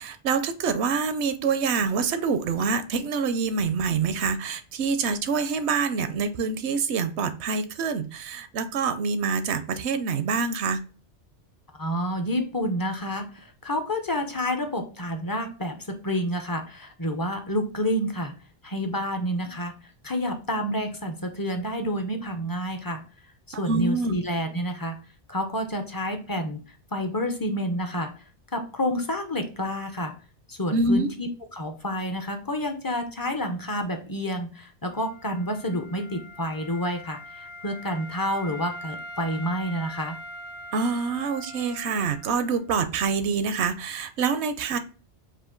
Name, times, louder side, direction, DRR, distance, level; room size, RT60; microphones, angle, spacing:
voice 1, 0.0-10.8 23.7-24.1 30.7-31.1 40.7-44.8, right 5 dB, 75° right, 10 dB, 0.9 m, -26 dB
voice 2, 11.8-18.3 18.6-19.7 20.0-23.0 23.5-25.0 25.3-26.6 26.9-28.2 28.5-30.1 30.5-40.2, equal, 30° left, 5 dB, 0.4 m, -29 dB
Wind instrument woodwind instrument, 34.9-42.7, left 1 dB, 90° left, 1.1 m, -42 dB
4.9 x 2.5 x 3.8 m, 0.36 s
omnidirectional pair, 1.2 m